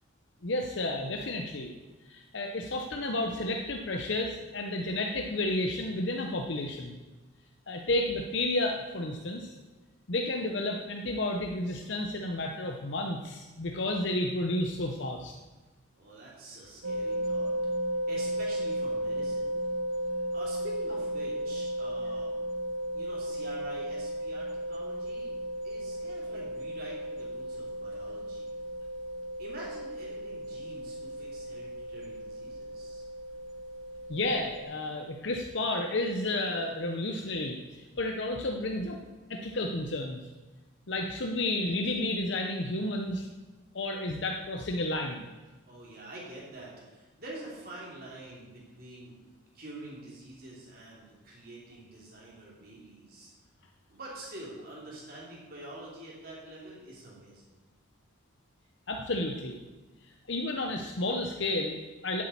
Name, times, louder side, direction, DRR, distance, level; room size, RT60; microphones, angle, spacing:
voice 1, 0.4-1.7 2.1-7.0 7.7-9.5 10.1-15.3 34.1-37.6 38.0-39.0 39.3-40.2 40.9-43.3 43.7-45.3 58.9-59.6 60.3-62.2, left 2 dB, 60° left, 2 dB, 0.8 m, -31 dB
voice 2, 16.0-19.6 20.3-22.3 22.9-25.3 25.6-28.5 29.4-33.1 45.7-49.2 49.5-53.3 53.9-57.5, right 1 dB, 45° right, -5 dB, 3.1 m, -46 dB
sound 1, 16.8-34.7, equal, 70° right, 1.5 m, -35 dB
8.3 x 7.5 x 8.5 m, 1.2 s
head